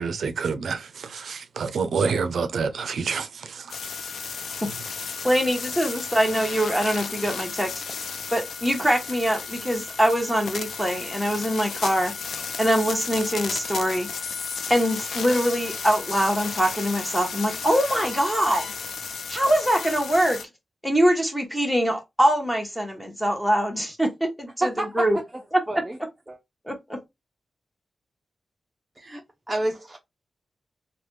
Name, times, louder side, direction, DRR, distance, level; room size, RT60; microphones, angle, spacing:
voice 1, 0.0-3.7, right 5 dB, 80° right, 0.4 m, -28 dB
sound 1, 3.7-20.4, left 5 dB, 80° left, 0.4 m, -34 dB
voice 2, 5.2-7.8 8.3-12.1 12.6-14.3 14.7-18.7 19.3-20.4 20.8-25.2 25.5-25.8 26.6-27.0, equal, 5° left, 0.9 m, -23 dB
voice 3, 24.6-25.1 25.7-26.0 26.3-26.4 29.0-30.0, right 1 dB, 15° right, 0.5 m, -29 dB
3.2 x 2.2 x 3.1 m
wide cardioid pair, 95°, 0 cm